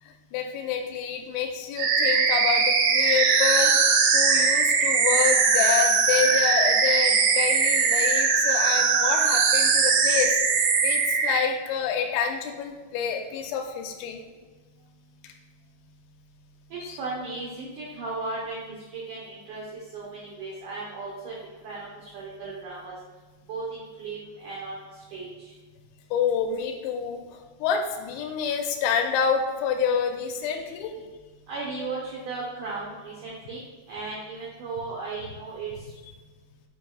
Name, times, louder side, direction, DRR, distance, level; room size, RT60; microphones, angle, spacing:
voice 1, 0.0-14.2 15.2-15.3 16.8-17.0 26.1-31.0, left 7 dB, 90° left, 3 dB, 2.6 m, -28 dB
sound 1, 1.8-11.4, right 5 dB, 85° right, 1.8 m, -21 dB
voice 2, 16.7-19.6 19.9-21.4 21.6-22.9 23.5-24.8 25.1-25.5 31.5-33.6 33.9-35.7, right 3 dB, 70° right, -5 dB, 2.0 m, -36 dB
9.0 x 5.3 x 2.3 m, 1.4 s
omnidirectional pair, 4.5 m